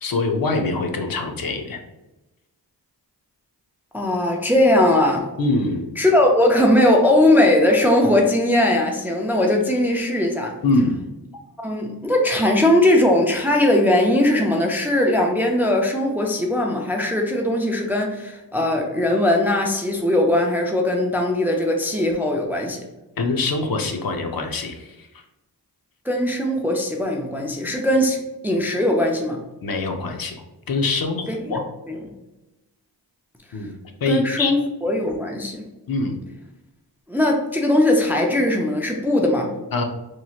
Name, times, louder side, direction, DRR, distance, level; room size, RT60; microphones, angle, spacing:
voice 1, 0.0-1.8 5.4-5.9 10.6-11.0 23.2-25.1 29.6-31.6 33.5-33.7 34.0-34.5 35.9-36.2 39.7-39.8, left 3 dB, 60° left, 3 dB, 0.5 m, -24 dB
voice 2, 3.9-5.3 6.0-10.6 11.6-22.8 26.1-28.2 28.4-29.4 31.3-31.6 31.9-32.0 34.1-35.6 37.1-39.5, left 1 dB, 5° right, 1 dB, 0.3 m, -19 dB
3.0 x 2.8 x 2.3 m, 0.99 s
wide cardioid pair, 95°, 40 cm